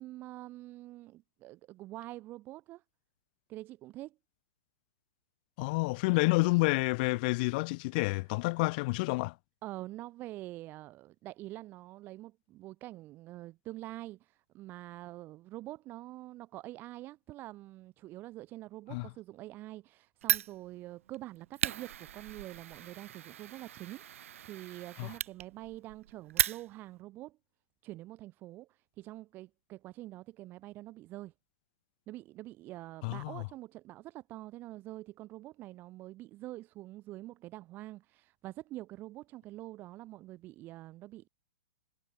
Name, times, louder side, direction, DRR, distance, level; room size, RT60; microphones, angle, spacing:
voice 1, 0.0-2.8 3.5-4.2 8.0-8.1 9.6-27.4 27.8-31.3 32.1-41.3, right 16 dB, 25° right, 0.9 m, -46 dB
voice 2, 5.6-9.3 18.9-19.1 25.0-25.1 33.0-33.4, left 26 dB, 40° left, 0.7 m, -29 dB
Fire, 20.2-27.0, right 11 dB, 70° right, 0.6 m, -36 dB
hypercardioid pair, 145°, 8 cm